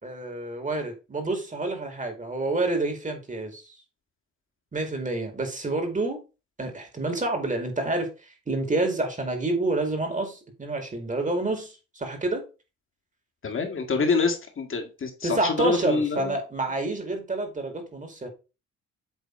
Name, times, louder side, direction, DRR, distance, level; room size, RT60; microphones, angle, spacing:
voice 1, 0.0-3.6 4.7-6.2 6.6-12.4 15.2-18.3, right 2 dB, 25° right, 2.3 m, -28 dB
voice 2, 13.4-16.4, left 4 dB, 45° left, 2.0 m, -26 dB
8.2 x 3.5 x 4.5 m
cardioid pair, 90°, 30 cm